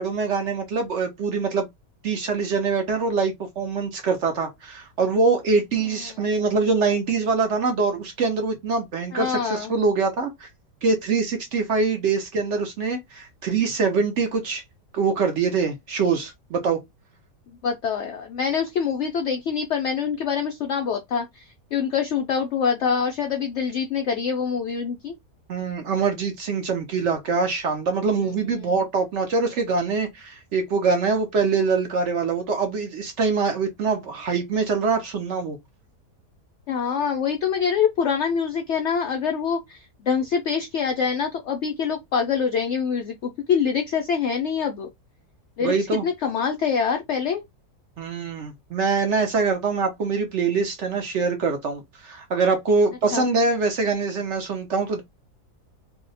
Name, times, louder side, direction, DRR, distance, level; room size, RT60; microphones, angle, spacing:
voice 1, 0.0-1.7 2.0-10.5 10.8-14.6 14.9-16.8 25.5-35.6 45.6-46.0 48.0-55.0, right 4 dB, 60° right, 0.8 m, -24 dB
voice 2, 9.1-9.7 17.6-25.1 28.6-28.7 36.7-44.9 45.6-47.4 53.1-53.3, left 6 dB, 75° left, 0.6 m, -25 dB
2.7 x 2.1 x 3.8 m
omnidirectional pair, 1.7 m